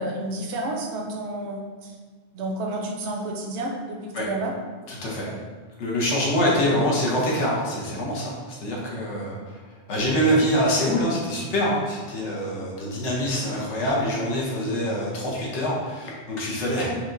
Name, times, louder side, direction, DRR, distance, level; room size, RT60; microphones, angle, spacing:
voice 1, 0.0-2.0 2.3-4.5 6.5-6.8 16.8-17.0, right 1 dB, 80° right, 1 dB, 0.9 m, -31 dB
voice 2, 4.9-5.3 5.8-9.6 9.9-16.9, equal, 85° left, -4 dB, 1.1 m, -25 dB
4.5 x 2.3 x 2.5 m, 1.5 s
omnidirectional pair, 1.1 m